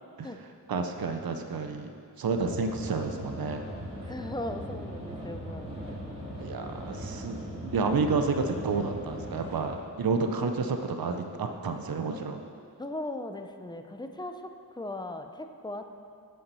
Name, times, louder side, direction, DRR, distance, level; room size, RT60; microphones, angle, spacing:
voice 1, 0.7-1.9 2.2-3.6 6.4-12.4, right 4 dB, 70° right, 6 dB, 0.6 m, -30 dB
sound 1, 2.3-9.7, equal, 15° right, 2.0 m, -39 dB
voice 2, 4.1-5.7 12.8-14.4 14.7-15.9, left 1 dB, 10° left, 6 dB, 0.5 m, -38 dB
8.5 x 5.5 x 5.4 m, 2.3 s
wide cardioid pair, 80°, 37 cm